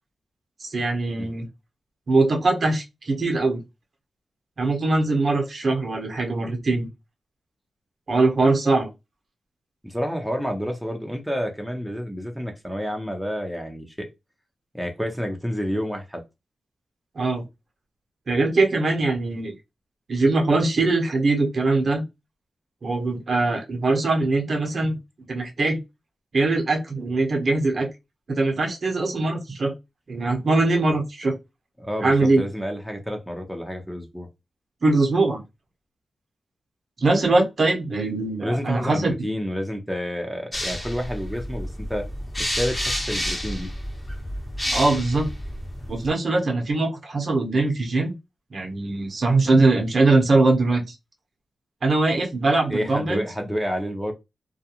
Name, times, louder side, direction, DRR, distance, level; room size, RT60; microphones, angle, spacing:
voice 1, 0.6-1.5 2.1-3.6 4.6-6.9 8.1-8.9 17.1-17.4 18.3-19.5 20.1-22.0 22.8-25.0 25.3-25.8 26.3-27.9 28.3-29.7 30.1-31.4 32.0-32.4 34.8-35.4 37.0-39.1 44.7-45.3 45.9-48.2 48.5-50.9 51.8-53.2, right 3 dB, 55° right, 0.8 m, -21 dB
voice 2, 9.8-14.1 14.7-16.2 31.8-34.3 38.4-42.1 42.4-43.7 52.7-54.1, equal, ahead, 0.7 m, -29 dB
sound 1, 40.5-46.1, equal, 20° left, 1.0 m, -30 dB
2.4 x 2.2 x 2.8 m
cardioid pair, 70°, 0 cm